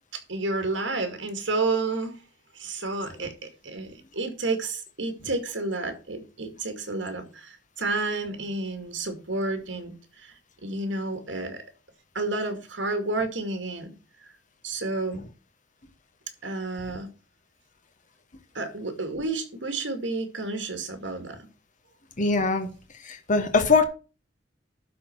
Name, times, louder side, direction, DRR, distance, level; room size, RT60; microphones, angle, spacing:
voice 1, 0.1-2.2 2.5-10.3 10.6-11.6 12.1-13.9 14.6-15.2 16.4-17.1 18.5-21.4, right 3 dB, 80° right, 2.3 m, -30 dB
voice 2, 22.2-22.7 23.0-23.8, left 4 dB, 45° left, 1.2 m, -22 dB
12.0 x 4.3 x 5.9 m
head